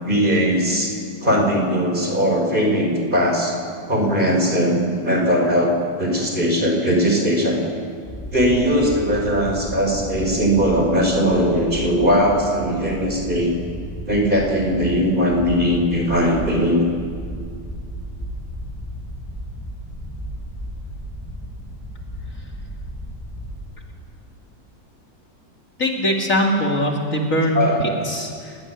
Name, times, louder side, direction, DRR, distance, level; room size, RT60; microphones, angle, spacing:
voice 1, 0.0-0.9 1.2-3.6 3.9-7.6 8.3-13.5 14.1-16.8 27.5-28.1, equal, 25° right, 1 dB, 5.3 m, -19 dB
sound 1, 8.0-23.6, equal, ahead, 7.6 m, -34 dB
voice 2, 25.8-27.6 28.1-28.6, equal, 45° left, 0 dB, 3.1 m, -21 dB
29.5 x 19.0 x 9.7 m, 2.2 s
omnidirectional pair, 2.0 m